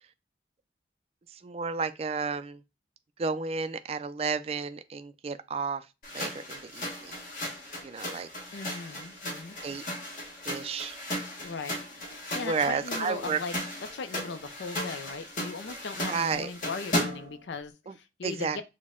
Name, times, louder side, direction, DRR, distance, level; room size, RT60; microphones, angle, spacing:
voice 1, 1.3-2.6 3.2-5.9 6.1-7.2 7.8-8.3 9.6-9.8 10.5-11.0 12.4-13.4 16.1-16.5 17.9-18.0 18.2-18.6, right 5 dB, 35° right, 0.3 m, -32 dB
sound 1, 6.0-17.4, left 1 dB, 50° left, 1.4 m, -36 dB
voice 2, 8.5-9.6 11.4-11.8 12.1-13.5 13.9-18.6, left 4 dB, 85° left, 0.5 m, -38 dB
6.1 x 2.1 x 3.6 m
head